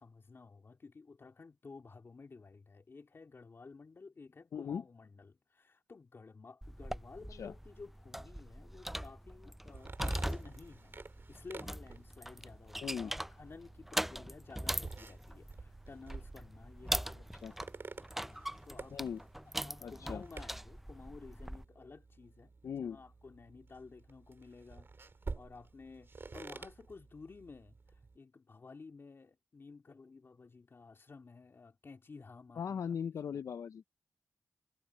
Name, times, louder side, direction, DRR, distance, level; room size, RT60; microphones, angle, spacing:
voice 1, 0.0-10.9 11.3-17.4 18.3-19.2 19.5-22.5 22.8-24.9 25.3-32.8 33.2-33.4, left 4 dB, 45° left, 2.7 m, -53 dB
voice 2, 4.5-4.8 7.3-7.5 12.8-13.1 17.3-17.5 18.9-19.2 19.8-20.2 22.6-23.0 32.6-33.9, left 7 dB, 70° left, 0.4 m, -39 dB
sound 1, 6.6-21.6, equal, 5° right, 0.3 m, -41 dB
sound 2, 9.6-28.2, right 4 dB, 45° right, 2.1 m, -51 dB
wide cardioid pair, 90°, 6 cm